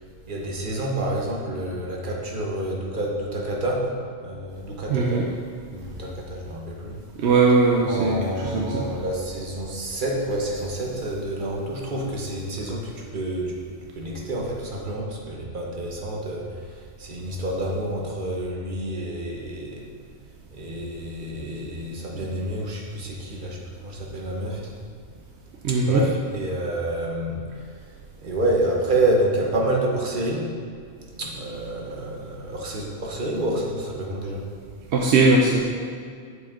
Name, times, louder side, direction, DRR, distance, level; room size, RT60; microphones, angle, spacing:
voice 1, 0.3-3.9 4.2-5.3 5.7-7.0 7.8-19.8 20.5-24.7 25.7-27.4 28.2-30.5 31.1-34.5, right 1 dB, 45° right, -2 dB, 1.1 m, -28 dB
voice 2, 4.9-5.3 7.2-8.9 22.2-22.3 25.6-26.0 34.9-35.6, right 3 dB, 70° right, -1 dB, 0.9 m, -20 dB
7.9 x 5.1 x 3.6 m, 2.2 s
omnidirectional pair, 1.2 m